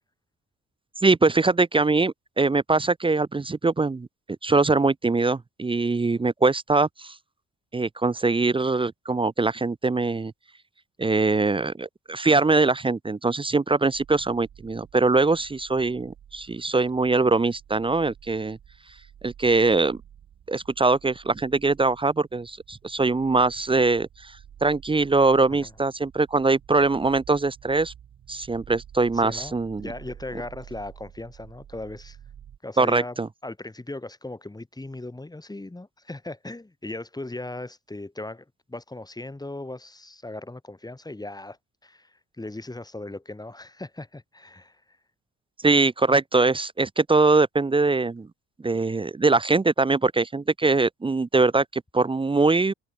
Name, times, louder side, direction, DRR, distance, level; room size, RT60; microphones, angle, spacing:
voice 1, 1.0-4.1 4.4-7.1 7.7-10.3 11.0-18.6 19.2-20.0 20.5-27.9 28.3-29.9 32.8-33.3 45.6-48.3 48.6-52.7, right 3 dB, 15° right, 0.6 m, -22 dB
sound 1, 13.9-32.6, right 9 dB, 60° right, 5.2 m, -50 dB
voice 2, 29.1-32.2 32.6-41.6 41.8-45.0, left 2 dB, 15° left, 2.8 m, -38 dB
cardioid pair, 90°, 30 cm